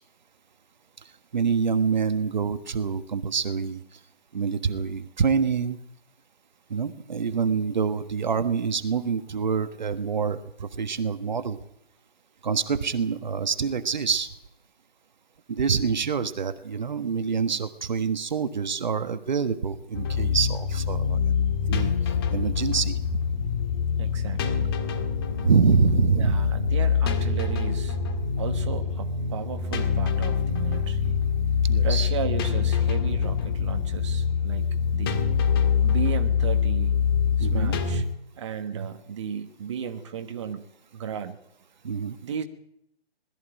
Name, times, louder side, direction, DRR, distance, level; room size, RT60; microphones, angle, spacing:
voice 1, 1.3-4.0 4.3-5.8 6.7-11.6 12.4-14.3 15.5-21.2 21.7-21.9 22.3-23.0 25.4-26.5 31.6-32.1 37.4-37.8 38.7-38.9 41.8-42.2, right 6 dB, 45° right, 11 dB, 1.4 m, -26 dB
sound 1, 19.9-38.0, left 6 dB, 25° left, 1.7 m, -25 dB
voice 2, 24.0-24.8 26.2-28.0 28.4-31.2 31.8-34.7 34.9-35.2 35.8-37.0 37.4-38.0 38.3-40.7 40.9-41.4 42.2-42.4, right 8 dB, 30° right, 7 dB, 1.3 m, -35 dB
21.0 x 14.0 x 9.1 m, 0.76 s
figure-of-eight pair, 150°, 31 cm